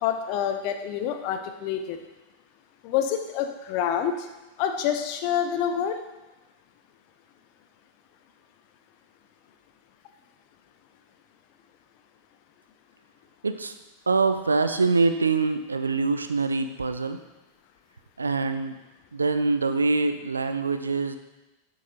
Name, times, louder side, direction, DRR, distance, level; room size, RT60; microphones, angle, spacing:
voice 1, 0.0-2.0 2.8-4.3 4.6-6.0, left 9 dB, 45° left, 6 dB, 0.5 m, -27 dB
voice 2, 13.4-13.8 14.1-17.2 18.2-18.8 19.1-21.2, right 4 dB, 75° right, 9 dB, 0.4 m, -24 dB
8.9 x 3.9 x 2.7 m, 1.0 s
figure-of-eight pair, 90°, 0 cm